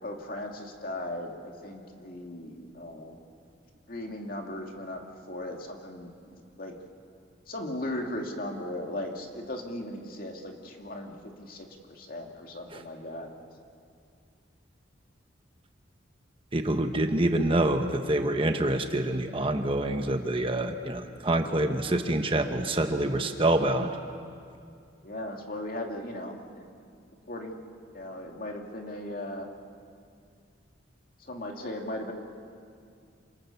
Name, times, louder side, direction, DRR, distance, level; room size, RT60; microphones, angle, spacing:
voice 1, 0.0-3.2 3.9-5.0 5.3-6.8 7.5-13.3 25.0-26.7 27.3-27.6 27.9-29.5 31.2-32.1, left 1 dB, 50° left, 2 dB, 2.5 m, -37 dB
voice 2, 16.5-23.9, right 1 dB, 30° right, 6 dB, 1.1 m, -26 dB
27.5 x 25.5 x 7.1 m, 2.4 s
head